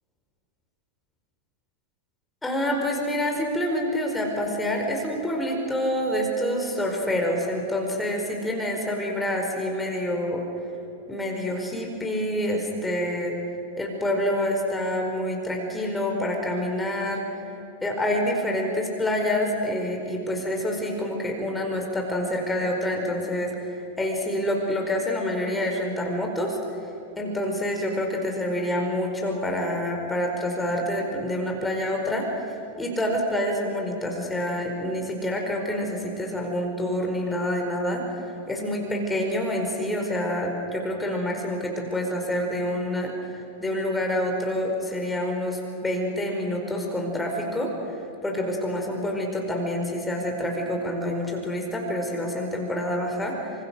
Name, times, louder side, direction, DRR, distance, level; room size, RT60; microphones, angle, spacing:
voice 1, 2.4-10.4 11.1-13.4 13.8-17.2 17.8-23.5 24.0-26.6 27.2-32.3 32.8-38.0 38.5-43.1 43.6-47.7 48.2-53.5, left 1 dB, 10° left, 1 dB, 4.9 m, -27 dB
27.0 x 26.0 x 6.5 m, 2.7 s
figure-of-eight pair, 90°, 0 cm